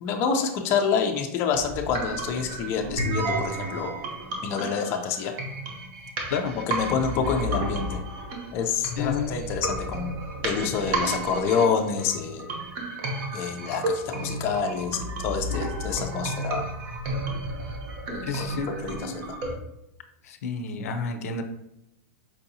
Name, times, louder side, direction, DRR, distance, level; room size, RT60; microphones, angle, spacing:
voice 1, 0.0-3.9 4.4-5.3 6.7-8.0 8.5-10.1 10.4-12.5 13.3-16.7 18.1-19.4, left 6 dB, 30° left, 4 dB, 0.4 m, -27 dB
sound 1, 1.5-19.5, right 1 dB, 45° right, 0.8 m, -32 dB
voice 2, 9.0-9.4 18.2-18.7 20.2-21.4, left 5 dB, 85° left, 7 dB, 0.5 m, -30 dB
4.6 x 2.6 x 2.7 m, 0.85 s
supercardioid pair, 160°, 8 cm